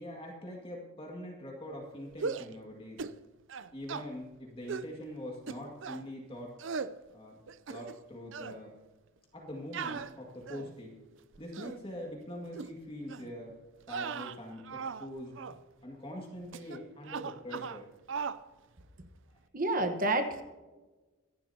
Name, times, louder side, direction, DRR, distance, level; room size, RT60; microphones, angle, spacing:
voice 1, 0.0-3.0 3.7-6.6 7.1-7.4 7.7-8.8 9.3-11.0 11.4-13.6 13.9-15.3 15.8-17.9, left 1 dB, 25° left, -1 dB, 2.1 m, -43 dB
sound 1, 2.1-2.6 3.0-3.2 3.5-4.1 4.7-4.9 5.5-6.0 6.6-6.9 7.5-8.1 8.3-8.6 9.7-10.8 11.3-11.8 12.5-12.7 13.1-13.3 13.8-15.1 15.4-15.6 16.5-16.8 17.1-17.8 18.1-18.4, right 5 dB, 55° right, 0.5 m, -38 dB
voice 2, 19.5-20.4, right 2 dB, 40° right, 7 dB, 1.2 m, -29 dB
25.0 x 11.5 x 2.8 m, 1.2 s
head